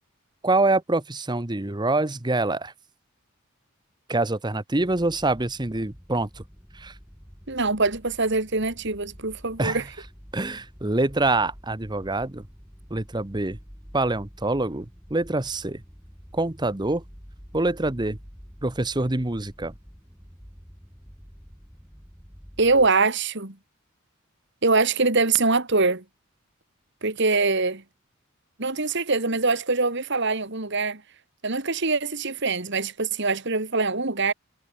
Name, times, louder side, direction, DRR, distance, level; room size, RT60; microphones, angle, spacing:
voice 1, 0.4-2.7 4.1-6.4 6.7-6.9 9.6-9.8 10.3-12.4 12.9-13.6 13.9-15.8 16.3-17.0 17.5-18.2 18.6-19.7, right 2 dB, 20° right, 1.0 m, -25 dB
sound 1, 4.8-22.9, equal, 5° right, 7.5 m, -48 dB
voice 2, 7.5-9.8 22.6-23.6 24.6-26.0 27.0-27.8 28.6-31.0 31.4-34.3, right 3 dB, 55° right, 2.9 m, -23 dB
head